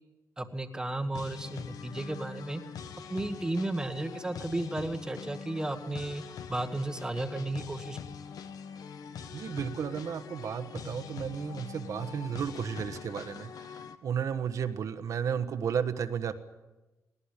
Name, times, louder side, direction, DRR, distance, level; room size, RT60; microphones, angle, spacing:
voice 1, 0.4-2.6 3.1-6.2 6.5-8.0, right 2 dB, 10° right, 8 dB, 1.4 m, -33 dB
sound 1, 1.1-13.9, left 7 dB, 75° left, 1.4 m, -43 dB
voice 2, 9.3-13.7 14.0-16.3, right 7 dB, 60° right, 9 dB, 1.4 m, -33 dB
19.5 x 18.0 x 10.0 m, 1.1 s
wide cardioid pair, 165°, 6 cm